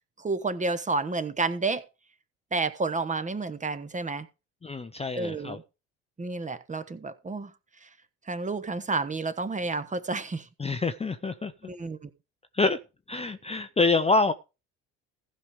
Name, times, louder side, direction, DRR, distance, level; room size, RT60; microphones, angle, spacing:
voice 1, 0.2-1.8 2.5-4.3 5.1-5.6 6.2-7.5 7.8-7.9 8.3-10.5 11.6-12.1, right 3 dB, 20° right, 1.1 m, -30 dB
voice 2, 4.6-5.6 10.6-11.5 12.5-12.8 13.1-14.3, left 3 dB, 15° left, 0.7 m, -26 dB
15.0 x 5.3 x 5.0 m
hypercardioid pair, 65°, 37 cm